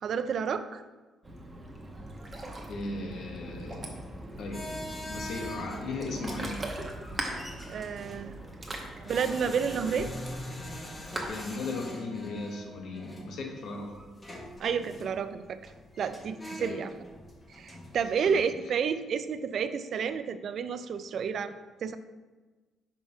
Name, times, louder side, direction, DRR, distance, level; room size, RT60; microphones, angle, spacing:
voice 1, 0.0-0.8 7.7-8.4 9.0-10.1 14.6-15.7 16.0-16.9 17.5-21.5 21.8-22.0, right 6 dB, 60° right, 11 dB, 0.4 m, -30 dB
Ocean, 1.2-11.3, right 1 dB, 25° right, 1.0 m, -40 dB
voice 2, 2.7-3.9 4.4-4.7 5.1-6.6 11.3-14.0 16.6-16.8 18.2-18.4, left 3 dB, 70° left, 1 dB, 1.1 m, -37 dB
sound 1, 4.5-18.4, left 1 dB, 25° left, 1.2 m, -43 dB
5.2 x 3.4 x 5.3 m, 1.3 s
cardioid pair, 90°, 0 cm